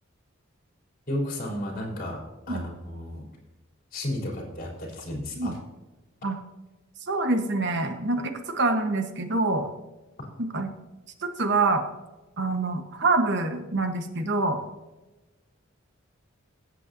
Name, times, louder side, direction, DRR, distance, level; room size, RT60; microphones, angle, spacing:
voice 1, 1.1-2.2 2.5-3.3 3.9-5.6 10.2-10.3, left 1 dB, 45° left, -2 dB, 3.6 m, -33 dB
voice 2, 7.1-9.7 10.4-10.7 11.2-11.8 12.4-14.6, right 3 dB, 60° right, 6 dB, 1.1 m, -26 dB
17.0 x 8.2 x 2.7 m, 1.1 s
head